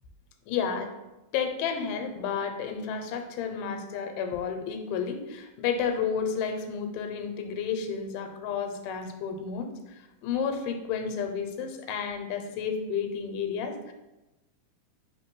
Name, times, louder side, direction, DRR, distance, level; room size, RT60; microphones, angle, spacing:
voice 1, 0.5-0.9 1.3-13.9, left 6 dB, 90° left, 6 dB, 2.1 m, -31 dB
4.6 x 3.2 x 3.0 m, 0.99 s
omnidirectional pair, 3.7 m